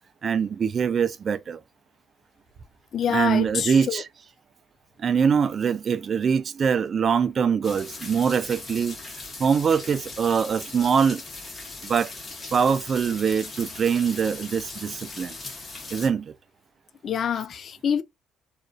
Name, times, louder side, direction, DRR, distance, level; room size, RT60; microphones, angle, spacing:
voice 1, 0.2-1.6 3.1-4.1 5.0-9.0 9.4-11.2 11.8-12.1 12.5-15.4 15.9-16.3, right 6 dB, 45° right, 0.3 m, -23 dB
voice 2, 2.9-4.0 17.0-18.0, left 8 dB, 50° left, 0.3 m, -26 dB
sound 1, 7.6-16.1, left 3 dB, 30° left, 1.0 m, -39 dB
2.4 x 2.3 x 2.2 m
supercardioid pair, 70°, 0 cm